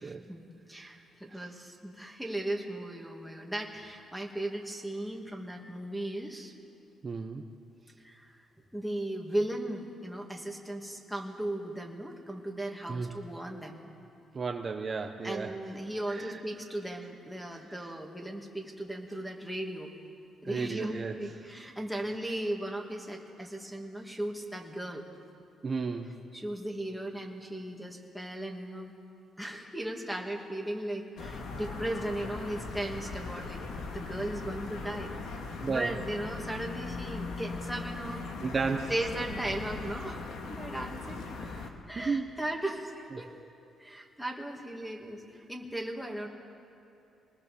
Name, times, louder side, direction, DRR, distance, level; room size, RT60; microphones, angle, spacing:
voice 1, 0.0-6.5 8.0-8.4 8.7-13.8 15.2-19.9 20.4-25.0 26.3-28.9 29.4-35.1 35.5-38.2 38.9-40.2 40.5-41.3 41.9-43.3 43.8-45.2 45.5-46.3, right 1 dB, ahead, 0 dB, 2.7 m, -37 dB
voice 2, 7.0-7.4 12.9-13.1 14.3-15.5 16.1-16.4 20.4-21.2 25.6-26.1 35.6-36.0 38.4-38.9 41.4-41.7 41.9-42.3, right 4 dB, 35° right, 3 dB, 1.1 m, -33 dB
sound 1, 31.2-41.7, left 3 dB, 80° left, 2.3 m, -39 dB
26.0 x 20.0 x 7.1 m, 2.8 s
cardioid pair, 90°, 0 cm